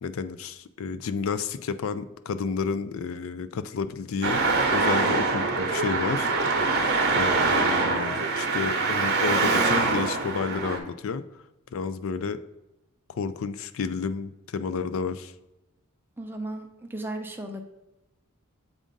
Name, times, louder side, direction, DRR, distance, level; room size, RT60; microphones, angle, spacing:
voice 1, 0.0-4.4 4.7-6.3 7.1-11.2 11.7-12.4 13.1-15.3, left 5 dB, 70° left, 12 dB, 0.4 m, -31 dB
Traffic noise roadway noise, 4.2-10.8, right 3 dB, 50° right, 0.8 m, -24 dB
voice 2, 16.2-17.6, right 1 dB, 10° right, 3 dB, 0.5 m, -35 dB
7.3 x 2.5 x 5.2 m, 0.96 s
head